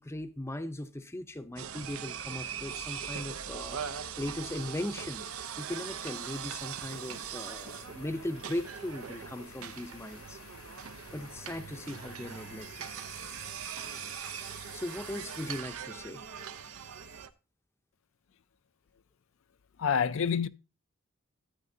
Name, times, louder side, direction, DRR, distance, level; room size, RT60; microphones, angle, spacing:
voice 1, 0.0-5.3 5.6-10.4 11.1-12.9 14.7-16.2, left 1 dB, 10° left, 0.6 m, -38 dB
sound 1, 1.6-17.3, right 8 dB, 80° right, 0.7 m, -41 dB
sound 2, 1.8-15.6, left 6 dB, 80° left, 1.2 m, -54 dB
sound 3, 12.3-17.3, right 8 dB, 35° right, 1.0 m, -53 dB
voice 2, 19.8-20.5, left 7 dB, 65° left, 0.4 m, -27 dB
13.0 x 8.4 x 2.7 m
head